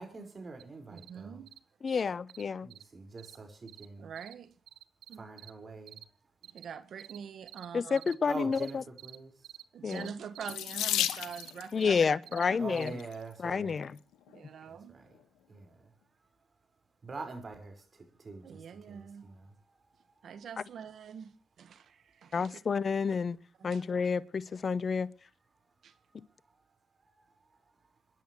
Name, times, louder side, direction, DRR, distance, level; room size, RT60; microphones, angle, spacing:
voice 1, 0.0-1.4 2.6-4.1 5.2-6.0 8.3-9.3 12.6-13.8 14.7-15.0 15.5-15.9 17.0-19.5, right 3 dB, 40° right, 5.2 m, -44 dB
sound 1, 0.6-0.7 1.0-1.1 1.5-1.6 1.9-2.0 2.3-2.4 2.7-2.8 3.2-3.4 3.7-3.9 4.2-4.3 4.7-5.5 5.9-6.0 6.4-6.7 7.0-7.2 7.5-7.7 8.0-8.1 8.5-8.7 9.0-9.2 9.4-9.6 9.9-10.1 10.4-10.5 10.8-11.0 11.3-11.5 11.8-12.0 12.3-12.4 12.8-12.9, right 14 dB, 85° right, 0.8 m, -49 dB
voice 2, 0.9-1.5 3.3-3.4 4.0-4.5 5.1-5.3 6.4-8.0 9.7-12.6 14.3-15.0 18.4-19.3 20.2-22.6 23.6-23.8 25.8-25.9, right 7 dB, 65° right, 1.6 m, -45 dB
voice 3, 1.8-2.7 7.7-8.8 9.8-10.1 11.7-12.9 13.4-13.9 22.3-23.4 23.6-25.1, left 5 dB, 50° left, 0.8 m, -29 dB
Water tap faucet / Sink (filling or washing), 10.5-11.7 12.7-13.1 13.8-13.9 14.3-14.4, left 12 dB, 85° left, 1.0 m, -32 dB
28.0 x 10.5 x 3.2 m
supercardioid pair, 60°, 0 cm